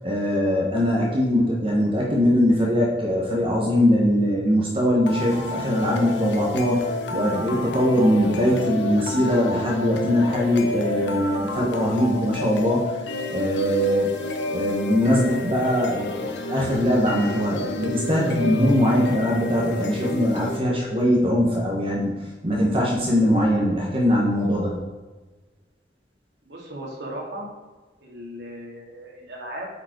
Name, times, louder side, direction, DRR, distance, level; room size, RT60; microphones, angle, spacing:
voice 1, 0.0-12.9 13.3-14.1 14.5-22.1 22.4-24.8, equal, 30° right, -3 dB, 1.4 m, -21 dB
sound 1, 5.1-21.1, left 2 dB, 90° left, 1.0 m, -31 dB
voice 2, 26.4-27.5 28.0-29.7, right 1 dB, 75° right, -2 dB, 2.2 m, -36 dB
8.3 x 4.9 x 4.6 m, 1.3 s
head